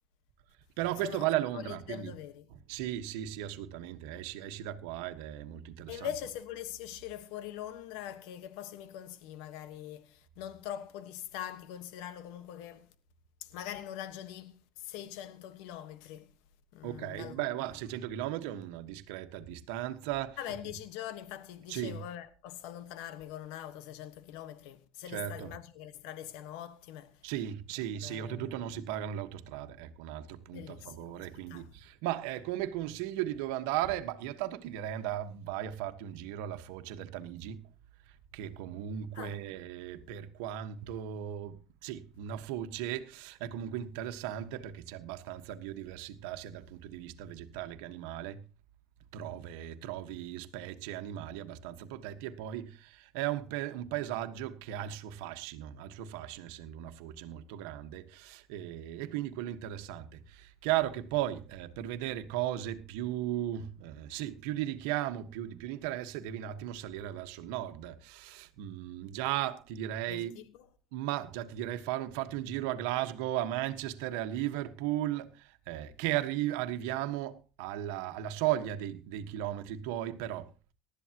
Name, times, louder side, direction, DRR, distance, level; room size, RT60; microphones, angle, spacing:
voice 1, 0.8-2.1 2.7-6.1 16.8-20.4 21.7-22.0 25.1-25.5 27.2-37.7 38.1-48.5 49.1-70.3 70.9-80.5, right 12 dB, 85° right, 1.4 m, -36 dB
voice 2, 1.5-2.4 5.9-12.9 13.4-16.3 16.7-17.4 20.4-27.3 28.0-28.5 30.5-31.7 39.1-39.4 70.1-70.6, left 11 dB, 80° left, 1.4 m, -43 dB
19.0 x 13.0 x 3.0 m
supercardioid pair, 110°, 0 cm